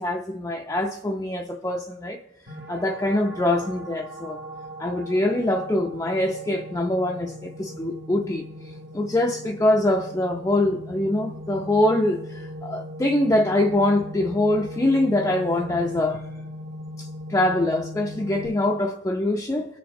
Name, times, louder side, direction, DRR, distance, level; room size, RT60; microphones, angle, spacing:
voice 1, 0.0-2.2 2.7-4.4 4.8-8.4 8.9-16.2 17.0-19.7, left 1 dB, 15° left, 0.4 m, -24 dB
sound 1, 2.5-18.5, equal, 70° right, 1.5 m, -39 dB
19.0 x 7.0 x 2.6 m
head